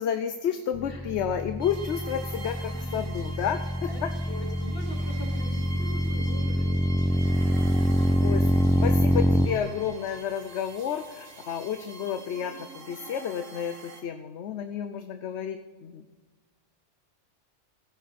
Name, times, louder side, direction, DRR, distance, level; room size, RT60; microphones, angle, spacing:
voice 1, 0.0-4.1 8.2-8.5 8.8-16.0, left 8 dB, 70° left, 9 dB, 0.9 m, -31 dB
sound 1, 0.7-9.5, equal, ahead, 0.4 m, -25 dB
sound 2, 1.6-14.0, right 3 dB, 80° right, 1.6 m, -44 dB
voice 2, 2.7-3.0 3.9-7.8, equal, 50° left, 0 dB, 2.6 m, -43 dB
16.5 x 10.0 x 4.2 m, 1.3 s
omnidirectional pair, 1.2 m